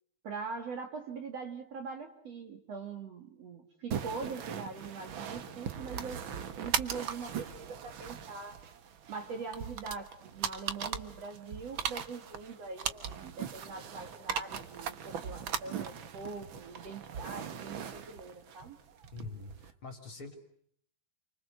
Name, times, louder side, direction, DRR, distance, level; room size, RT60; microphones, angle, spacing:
voice 1, 0.2-6.2 6.6-8.6 9.1-18.8, right 4 dB, 50° right, 6 dB, 2.7 m, -42 dB
sound 1, 3.9-19.7, right 7 dB, 85° right, 1.1 m, -39 dB
voice 2, 19.1-20.4, left 3 dB, 35° left, 7 dB, 3.4 m, -45 dB
29.5 x 25.0 x 7.9 m, 0.65 s
omnidirectional pair, 4.3 m